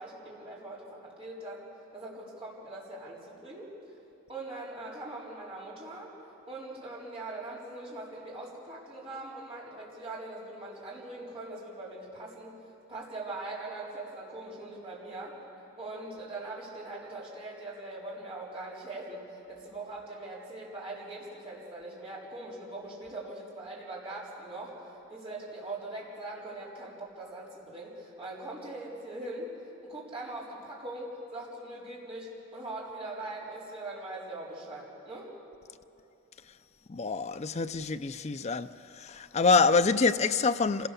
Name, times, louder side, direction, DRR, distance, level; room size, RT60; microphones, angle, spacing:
voice 1, 0.0-4.0 4.3-6.1 6.5-12.6 12.9-15.4 15.8-29.5 29.8-35.4, right 2 dB, 30° right, 4.3 m, -41 dB
voice 2, 36.9-38.7 38.9-40.9, left 4 dB, 30° left, 0.5 m, -26 dB
26.0 x 17.0 x 7.0 m
head